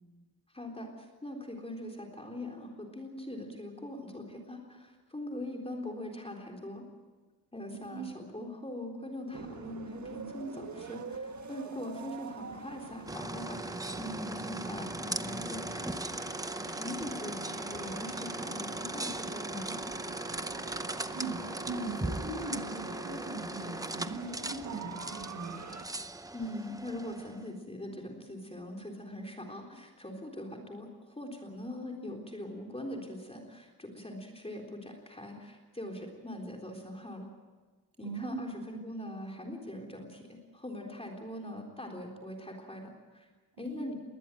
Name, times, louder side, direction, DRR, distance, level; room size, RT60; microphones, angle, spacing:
voice 1, 0.5-6.8 7.5-16.0 16.7-19.8 26.3-37.3 38.0-43.3 43.6-44.0, left 1 dB, 15° left, 1 dB, 3.8 m, -42 dB
sound 1, 9.3-25.9, right 5 dB, 50° right, 1.4 m, -45 dB
sound 2, 13.1-27.5, right 1 dB, 10° right, 0.7 m, -38 dB
voice 2, 21.7-25.6 38.0-38.4 43.7-43.8, right 3 dB, 65° right, 2 dB, 7.7 m, -39 dB
21.0 x 19.5 x 9.1 m, 1.3 s
wide cardioid pair, 130°, 38 cm